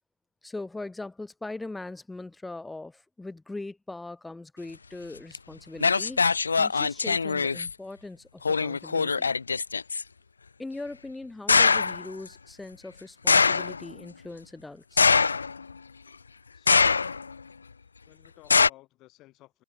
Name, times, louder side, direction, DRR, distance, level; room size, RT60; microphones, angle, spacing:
voice 1, 0.4-9.3 10.6-15.0, left 2 dB, 5° left, 3.7 m, -40 dB
sound 1, 5.3-5.4 5.8-7.7 8.4-10.0 11.5-12.0 13.3-13.8 15.0-15.7 16.7-17.3 18.5-18.7, left 5 dB, 75° left, 0.6 m, -22 dB
voice 2, 16.5-17.1 18.1-19.6, left 18 dB, 30° left, 5.9 m, -55 dB
open air
figure-of-eight pair, 105°, 0 cm